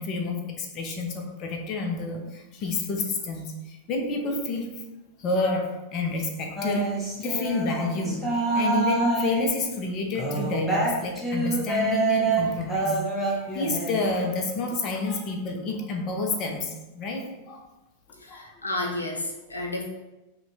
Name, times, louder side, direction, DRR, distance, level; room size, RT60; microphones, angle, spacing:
voice 1, 0.0-4.7 5.2-17.6 18.3-18.7 19.5-19.6, left 2 dB, 35° left, 2 dB, 0.6 m, -29 dB
sound 1, 6.6-9.6 10.1-14.1, right 2 dB, ahead, 0.9 m, -26 dB
voice 2, 18.2-19.8, left 2 dB, 80° left, 0 dB, 0.5 m, -31 dB
5.4 x 2.2 x 2.7 m, 1.0 s
figure-of-eight pair, 90°, 0 cm